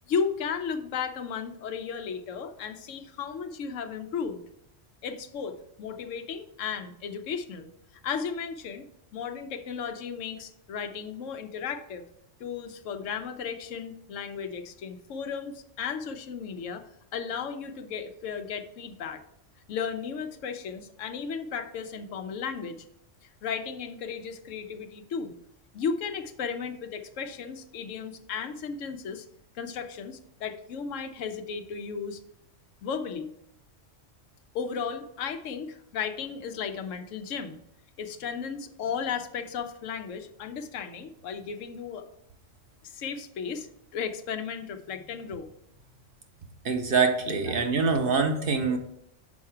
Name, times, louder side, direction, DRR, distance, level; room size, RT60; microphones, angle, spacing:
voice 1, 0.1-4.4 5.0-7.7 8.0-8.9 9.1-12.0 12.4-16.8 17.1-19.2 19.7-22.8 23.2-25.3 25.7-29.3 29.5-32.2 32.8-33.3 34.5-37.6 38.0-42.1 42.8-45.5 47.5-47.6, left 6 dB, 90° left, 8 dB, 1.0 m, -34 dB
voice 2, 46.6-48.8, right 4 dB, 50° right, 5 dB, 0.9 m, -24 dB
6.2 x 4.7 x 4.5 m, 0.78 s
omnidirectional pair, 1.3 m